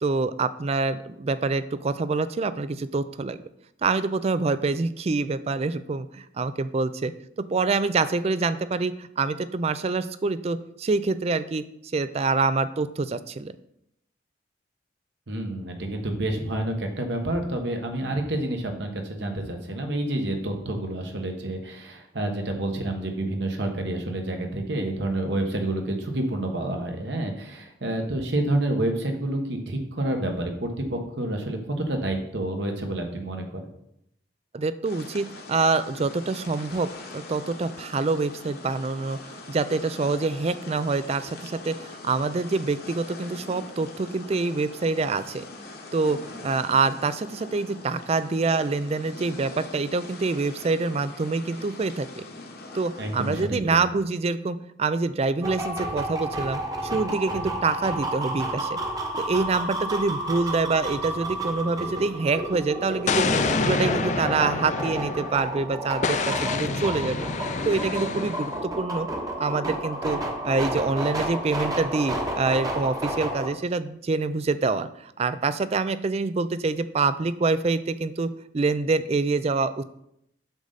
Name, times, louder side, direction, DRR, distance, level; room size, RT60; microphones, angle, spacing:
voice 1, 0.0-3.4 3.8-7.1 7.5-11.6 11.9-13.5 34.5-39.2 39.5-45.4 45.9-52.2 52.7-58.8 59.2-63.2 63.6-67.2 67.6-69.1 69.4-79.8, right 3 dB, 35° right, 14 dB, 0.4 m, -26 dB
voice 2, 15.3-33.6 53.0-53.8, right 1 dB, 65° right, 3 dB, 1.3 m, -29 dB
sound 1, 34.8-53.5, left 2 dB, 55° left, 1.3 m, -42 dB
sound 2, 55.4-73.5, right 1 dB, 20° right, 1.0 m, -31 dB
Explosion, 63.1-65.5 66.0-68.6, left 4 dB, 40° left, 0.5 m, -27 dB
8.1 x 6.5 x 4.0 m, 0.77 s
head